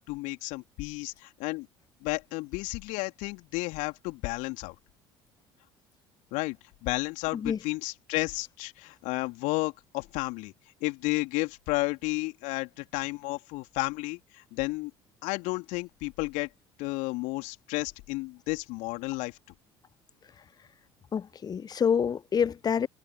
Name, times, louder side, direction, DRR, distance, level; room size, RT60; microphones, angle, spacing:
voice 1, 0.0-1.7 2.0-4.7 6.3-10.5 10.8-14.9 15.2-16.5 16.8-19.4, left 24 dB, 60° left, 3.2 m, -32 dB
voice 2, 21.1-22.9, left 7 dB, 25° left, 0.7 m, -27 dB
figure-of-eight pair, 60°, 15 cm